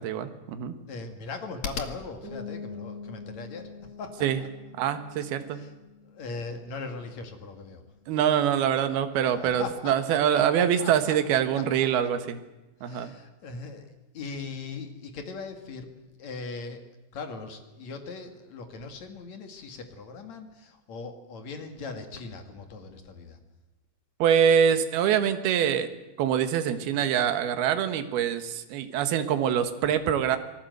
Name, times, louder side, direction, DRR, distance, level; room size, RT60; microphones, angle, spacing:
voice 1, 0.0-0.7 4.2-4.4 4.8-5.6 8.1-12.4 12.8-13.1 24.2-25.9 26.2-30.4, right 9 dB, 65° right, 9 dB, 2.7 m, -24 dB
voice 2, 0.9-3.6 4.0-4.3 5.5-5.7 6.0-7.8 9.1-10.9 11.3-11.6 12.8-16.8 17.1-23.4, left 4 dB, 50° left, 6 dB, 2.4 m, -39 dB
sound 1, 2.2-7.8, left 5 dB, 15° left, 5.8 m, -45 dB
27.5 x 19.0 x 8.0 m, 1.0 s
omnidirectional pair, 6.0 m